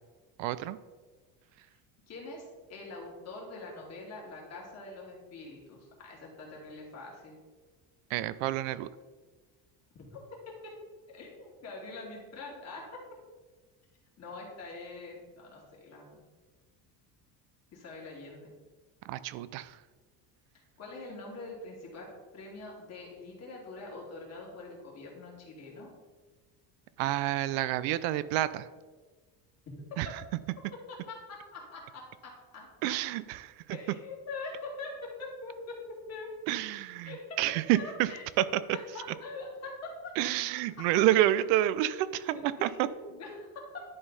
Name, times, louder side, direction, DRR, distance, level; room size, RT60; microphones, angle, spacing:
voice 1, 0.4-0.8 8.1-8.9 19.1-19.8 27.0-28.7 30.0-30.1 32.8-33.5 36.5-38.1 38.4-38.6 40.2-42.7, right 14 dB, 90° right, 15 dB, 0.5 m, -28 dB
voice 2, 2.1-7.4 10.0-10.1 11.1-13.0 14.2-16.2 17.7-18.5 20.8-25.9 29.9-30.0 31.1-32.7 33.7-35.8 36.1-36.3 37.0-37.4 37.7-38.2 38.7-40.1 40.8-40.9 42.3-43.8, left 3 dB, 35° left, -3 dB, 2.4 m, -44 dB
11.0 x 3.9 x 4.0 m, 1.3 s
cardioid pair, 140°, 43 cm